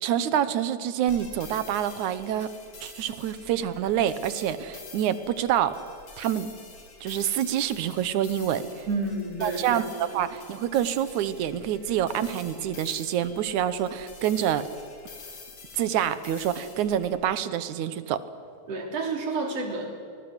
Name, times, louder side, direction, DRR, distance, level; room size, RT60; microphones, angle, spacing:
voice 1, 0.0-2.5 2.8-5.7 6.2-6.5 7.0-8.9 9.4-14.7 15.7-18.2, right 10 dB, 85° right, 13 dB, 2.5 m, -27 dB
sound 1, 1.1-17.1, left 4 dB, 85° left, 4.9 m, -47 dB
voice 2, 8.9-9.8 18.7-20.0, right 3 dB, 55° right, 2 dB, 4.4 m, -30 dB
25.0 x 20.0 x 8.2 m, 2.4 s
omnidirectional pair, 3.3 m